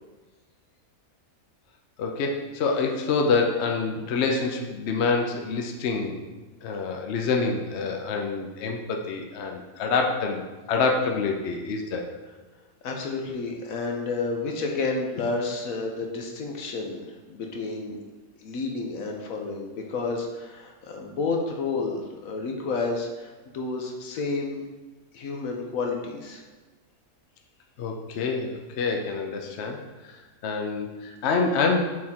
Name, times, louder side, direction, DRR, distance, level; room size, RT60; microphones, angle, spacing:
voice 1, 2.0-6.2 6.6-12.1 27.8-29.8 30.4-31.8, left 4 dB, 60° left, 3 dB, 0.8 m, -26 dB
voice 2, 12.8-18.0 18.4-24.6 25.1-26.4, left 3 dB, 75° left, 1 dB, 1.2 m, -30 dB
6.4 x 3.6 x 4.3 m, 1.3 s
omnidirectional pair, 1.5 m